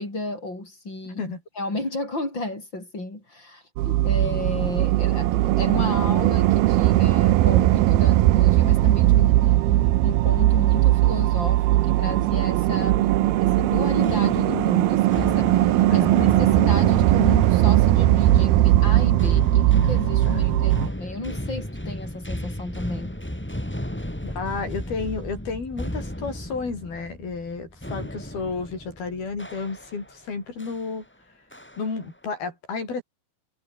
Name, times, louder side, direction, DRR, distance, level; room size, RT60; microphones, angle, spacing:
voice 1, 0.0-1.2 1.6-13.2 13.5-23.2, left 2 dB, 30° left, 8.7 m, -32 dB
sound 1, 3.8-20.9, right 16 dB, 90° right, 2.9 m, -19 dB
sound 2, 13.6-30.2 30.6-30.9 31.5-32.0, equal, 5° left, 2.8 m, -34 dB
voice 2, 24.2-31.1 31.8-33.0, left 4 dB, 90° left, 9.0 m, -32 dB
omnidirectional pair, 4.2 m